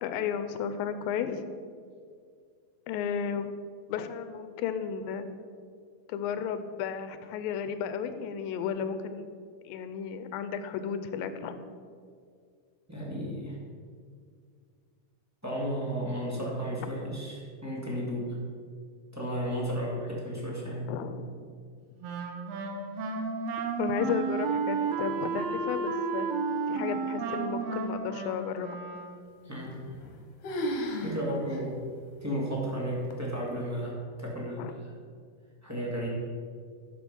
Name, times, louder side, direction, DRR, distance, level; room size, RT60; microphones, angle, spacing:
voice 1, 0.0-1.5 2.9-3.5 3.9-5.3 6.1-9.3 9.6-11.6 20.9-21.3 23.8-26.3 26.7-28.7 34.6-34.8, left 7 dB, 90° left, 10 dB, 2.5 m, -33 dB
voice 2, 12.9-13.6 15.4-18.4 19.1-20.9 29.4-29.9 31.0-31.8 32.2-34.6 35.6-36.1, equal, 10° right, -5 dB, 1.1 m, -33 dB
Wind instrument woodwind instrument, 22.0-29.4, right 5 dB, 80° right, 1.4 m, -32 dB
sound 1, 29.7-30.2 30.4-31.2 31.5-31.6 32.3-32.4 33.1-33.5, equal, 70° left, 2.4 m, -33 dB
11.0 x 6.9 x 5.4 m, 2.1 s
omnidirectional pair, 4.0 m